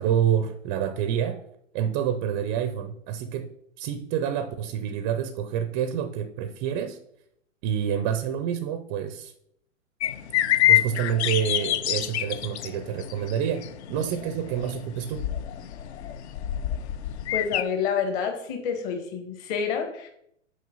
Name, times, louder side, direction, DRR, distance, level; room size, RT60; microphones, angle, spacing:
voice 1, 0.0-1.4 1.7-3.5 3.8-7.0 7.6-9.3 10.7-13.6 13.9-15.3, right 9 dB, 20° right, 9 dB, 0.4 m, -27 dB
sound 1, 10.0-17.6, left 13 dB, 55° left, 0.6 m, -27 dB
voice 2, 17.3-20.1, left 6 dB, 40° left, 5 dB, 1.8 m, -28 dB
6.3 x 5.4 x 5.4 m, 0.73 s
hypercardioid pair, 125°, 40 cm